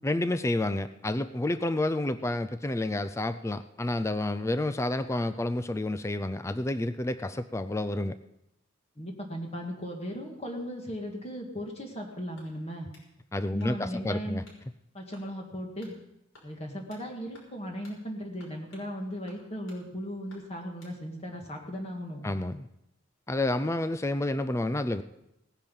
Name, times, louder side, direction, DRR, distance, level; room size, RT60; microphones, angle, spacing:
voice 1, 0.0-8.2 13.3-14.4 22.2-22.7 23.3-25.0, left 1 dB, 15° left, 12 dB, 0.4 m, -29 dB
voice 2, 9.0-12.9 13.5-14.5 14.9-15.9 16.4-22.3, equal, 30° left, 1 dB, 1.8 m, -37 dB
sound 1, 12.4-13.1 13.6-14.0 14.4-14.6 15.1-15.3 15.8-16.0 16.3-17.1 17.3-17.6 17.8-18.0 18.4-18.9 19.3-19.8 20.3-21.0, left 2 dB, 75° left, 5.8 m, -57 dB
18.0 x 10.0 x 5.4 m, 0.83 s
head